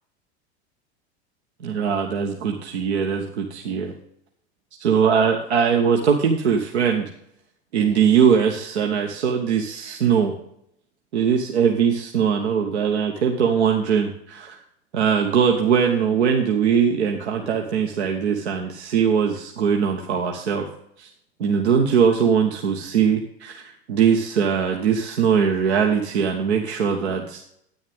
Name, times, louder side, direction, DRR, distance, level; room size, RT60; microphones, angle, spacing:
voice 1, 1.6-3.9 4.8-7.1 7.7-10.3 11.1-14.6 14.9-20.7 21.0-21.1 21.4-27.4, right 7 dB, 75° right, 2 dB, 1.1 m, -21 dB
9.9 x 9.4 x 3.5 m, 0.74 s
hypercardioid pair, 90°, 33 cm